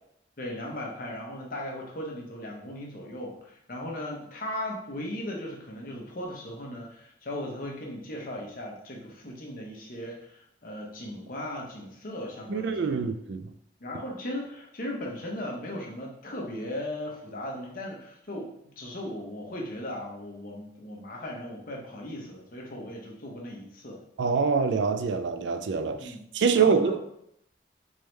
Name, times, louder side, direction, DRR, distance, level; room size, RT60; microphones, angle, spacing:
voice 1, 0.4-13.1 13.8-24.0 26.0-26.2 26.6-27.0, left 1 dB, 55° left, -1 dB, 0.9 m, -37 dB
voice 2, 12.5-13.4 24.2-27.0, right 5 dB, 80° right, 9 dB, 0.4 m, -25 dB
3.6 x 3.1 x 3.2 m, 0.73 s
head